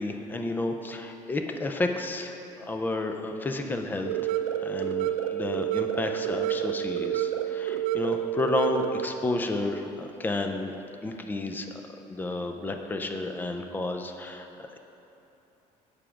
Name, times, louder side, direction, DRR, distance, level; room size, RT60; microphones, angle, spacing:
voice 1, 0.0-4.3 4.6-14.8, left 2 dB, 15° left, 5 dB, 0.4 m, -31 dB
sound 1, 4.1-9.1, right 11 dB, 85° right, 0.4 m, -29 dB
7.1 x 5.0 x 5.8 m, 3.0 s
cardioid pair, 160°, 14 cm